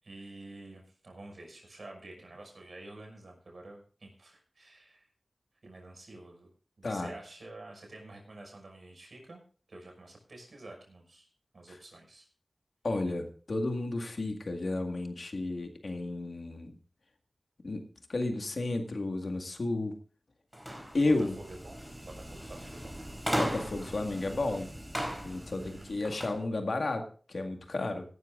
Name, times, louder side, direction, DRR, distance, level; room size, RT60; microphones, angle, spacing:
voice 1, 0.0-5.1 5.6-6.5 6.8-9.4 9.7-11.3 11.5-12.3 21.0-21.8 22.0-22.9 25.5-26.1, right 2 dB, 75° right, 1 dB, 6.0 m, -49 dB
voice 2, 12.8-16.7 17.6-17.8 18.1-19.9 20.9-21.3 23.4-24.7 25.2-28.0, left 2 dB, 75° left, 5 dB, 1.9 m, -32 dB
sound 1, 20.5-26.4, equal, 10° right, 4.1 m, -38 dB
17.0 x 12.5 x 2.6 m, 0.40 s
cardioid pair, 45°, 0 cm